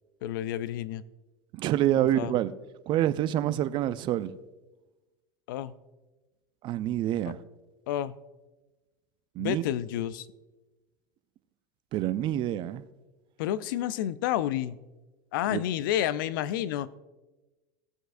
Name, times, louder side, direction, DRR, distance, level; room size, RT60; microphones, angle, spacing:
voice 1, 0.2-1.0 1.9-2.3 5.5-5.7 7.9-8.2 9.4-10.3 13.4-14.8 15.3-16.9, left 12 dB, 70° left, 0.5 m, -30 dB
voice 2, 1.5-2.5 2.9-4.3 6.6-7.4 9.4-9.6 11.9-12.8 15.5-15.6, right 12 dB, 45° right, 0.5 m, -27 dB
17.0 x 7.8 x 2.6 m
hypercardioid pair, 90°, 11 cm